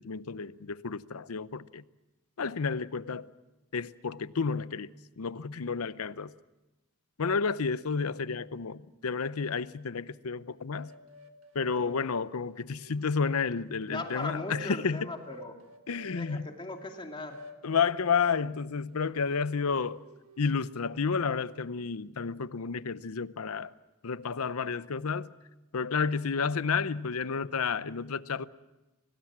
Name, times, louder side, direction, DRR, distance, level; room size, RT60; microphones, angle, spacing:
voice 1, 0.0-1.8 2.4-3.3 3.7-6.3 7.2-10.9 11.5-15.1 15.9-16.5 17.6-20.0 20.4-23.7 24.0-25.3 25.7-28.5, left 5 dB, 80° left, 0.7 m, -31 dB
sound 1, 10.8-13.2 13.9-16.3 16.8-18.5 18.9-21.0, equal, 70° right, 1.7 m, -51 dB
voice 2, 13.8-15.6 16.1-17.4, left 2 dB, 25° left, 2.6 m, -39 dB
25.5 x 19.0 x 7.4 m
head